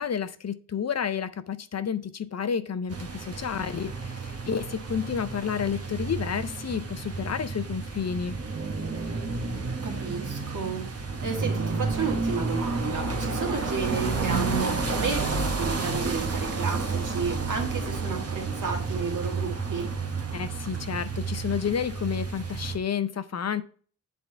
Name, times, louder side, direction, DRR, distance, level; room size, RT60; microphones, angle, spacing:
voice 1, 0.0-8.4 20.3-23.6, left 7 dB, 50° left, 0.5 m, -30 dB
sound 1, 2.9-22.8, right 4 dB, 45° right, 1.0 m, -31 dB
voice 2, 9.8-10.9 11.2-19.9, right 5 dB, 65° right, 1.7 m, -32 dB
8.1 x 3.7 x 4.3 m
wide cardioid pair, 140°, 33 cm